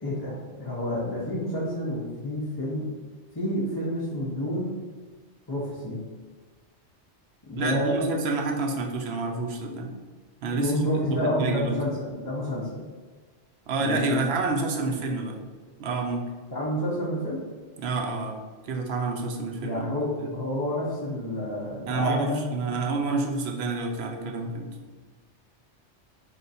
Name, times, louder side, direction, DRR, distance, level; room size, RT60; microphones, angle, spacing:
voice 1, 0.0-2.9 3.3-4.8 5.5-6.0 7.5-8.0 10.6-12.8 13.8-14.2 16.5-17.4 19.6-22.7, left 1 dB, 30° left, -7 dB, 0.4 m, -29 dB
voice 2, 7.6-9.9 10.4-10.8 11.1-11.8 13.7-15.4 15.8-16.3 17.8-18.4 18.6-20.3 21.9-24.7, right 3 dB, 65° right, 2 dB, 0.8 m, -28 dB
3.3 x 2.5 x 4.0 m, 1.4 s
omnidirectional pair, 1.2 m